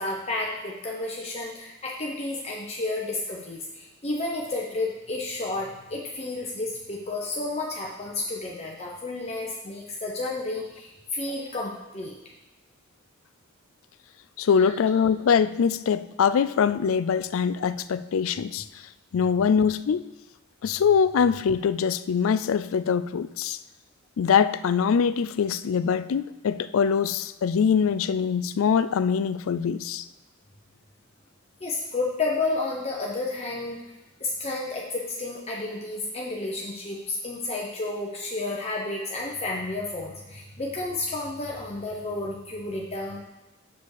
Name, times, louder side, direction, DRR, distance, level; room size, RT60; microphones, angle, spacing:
voice 1, 0.0-12.2 14.5-14.7 31.6-33.8 34.2-43.2, left 2 dB, 30° left, -2 dB, 0.8 m, -31 dB
voice 2, 14.4-18.6 19.1-20.0 20.6-23.6 24.2-30.0, left 6 dB, 70° left, 15 dB, 0.4 m, -23 dB
6.9 x 6.8 x 4.8 m, 1.1 s
head